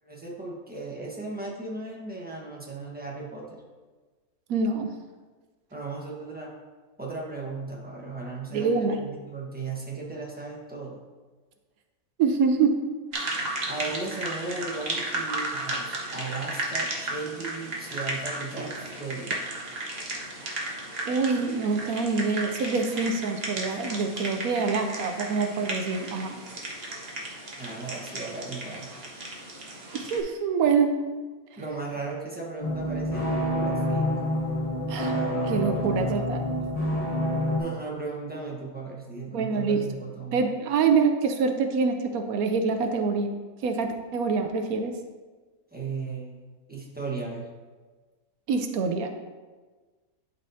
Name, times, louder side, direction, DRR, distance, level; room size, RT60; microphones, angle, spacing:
voice 1, 0.0-3.6 5.7-6.5 7.0-11.0 13.7-19.4 27.6-28.9 31.6-34.1 36.0-36.1 37.6-40.5 45.7-46.4 46.7-47.5, right 3 dB, 5° right, -4 dB, 1.1 m, -36 dB
voice 2, 4.5-4.9 8.5-9.0 12.2-12.8 13.1-13.4 21.0-26.4 29.9-31.0 34.9-35.2 35.5-36.4 39.3-39.9 40.3-43.4 43.6-45.0 48.5-49.1, right 5 dB, 80° right, 6 dB, 1.1 m, -25 dB
sound 1, 13.1-30.2, right 2 dB, 45° right, 1.2 m, -34 dB
sound 2, 32.6-37.6, left 1 dB, 30° left, 0.7 m, -27 dB
11.5 x 4.2 x 2.7 m, 1.3 s
omnidirectional pair, 1.5 m